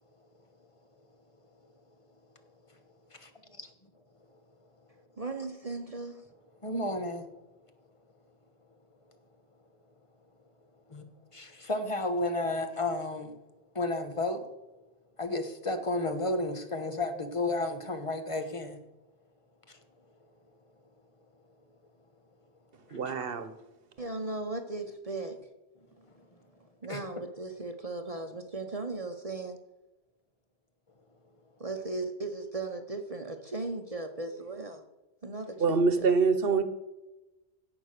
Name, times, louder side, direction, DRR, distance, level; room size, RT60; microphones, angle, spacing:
voice 1, 5.2-6.2 24.0-25.4 26.8-29.6 31.6-34.8 35.2-36.1, right 2 dB, 35° right, 1.0 m, -37 dB
voice 2, 6.6-7.3 10.9-11.0 11.3-13.3 13.7-14.4 15.2-18.8 23.1-23.2 26.9-27.0, left 2 dB, 30° left, 1.3 m, -32 dB
voice 3, 22.9-23.5 35.6-36.6, right 4 dB, 65° right, 1.3 m, -25 dB
16.0 x 5.9 x 6.6 m
omnidirectional pair, 1.1 m